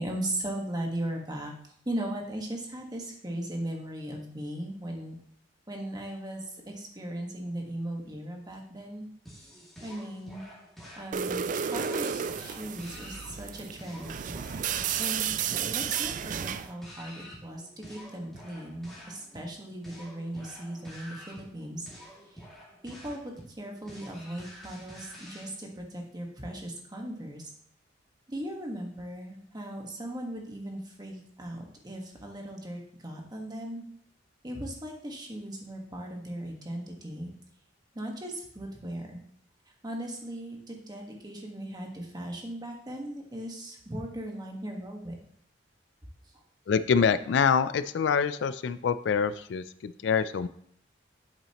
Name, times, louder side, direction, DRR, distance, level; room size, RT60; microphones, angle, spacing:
voice 1, 0.0-1.5 1.8-5.2 5.7-6.4 6.7-9.1 9.8-10.4 11.0-11.4 11.7-14.2 14.4-14.6 15.0-15.3 15.7-21.9 22.8-27.5 28.3-33.8 34.4-37.3 37.9-39.2 39.8-45.1, right 1 dB, 20° right, 1 dB, 1.4 m, -38 dB
sound 1, 9.2-25.5, equal, ahead, 2.2 m, -49 dB
sound 2, 11.1-16.7, right 7 dB, 45° right, 0.3 m, -32 dB
voice 2, 46.7-50.5, left 6 dB, 65° left, 13 dB, 0.3 m, -26 dB
8.7 x 7.0 x 2.9 m, 0.65 s
head